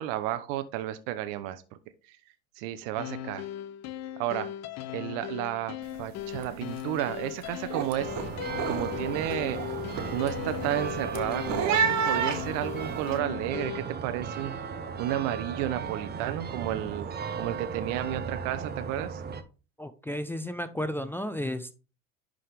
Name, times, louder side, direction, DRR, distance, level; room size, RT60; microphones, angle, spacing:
voice 1, 0.0-1.6 2.1-2.2 2.6-3.5 4.2-4.5 4.9-8.1 8.7-9.6 10.1-14.5 15.0-17.1 17.4-19.2, right 13 dB, 60° right, 10 dB, 0.9 m, -32 dB
sound 1, 3.0-13.9, left 10 dB, 40° left, 0.7 m, -38 dB
sound 2, 5.8-6.1 6.4-6.8 7.2-13.1, right 7 dB, 45° right, 1.4 m, -32 dB
sound 3, 8.0-19.4, right 6 dB, 25° right, 1.0 m, -36 dB
voice 2, 19.8-21.7, left 1 dB, 5° left, 8 dB, 0.7 m, -33 dB
11.0 x 3.8 x 3.4 m, 0.33 s
hypercardioid pair, 75°, 40 cm